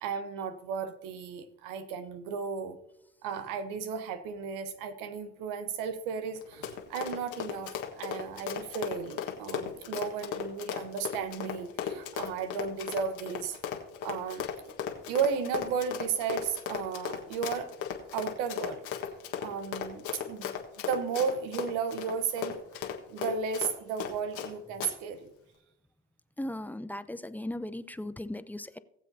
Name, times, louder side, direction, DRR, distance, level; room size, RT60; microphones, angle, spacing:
voice 1, 0.0-2.8 3.2-13.6 14.0-14.7 15.1-17.8 18.1-18.8 19.4-20.5 20.9-22.6 23.1-25.3, right 6 dB, 80° right, 10 dB, 1.0 m, -34 dB
Run, 6.4-24.5 24.8-24.9, left 9 dB, 70° left, 1.5 m, -36 dB
voice 2, 26.4-28.8, left 1 dB, 5° left, 13 dB, 0.6 m, -37 dB
18.5 x 7.4 x 2.7 m, 0.83 s
hypercardioid pair, 65°, 31 cm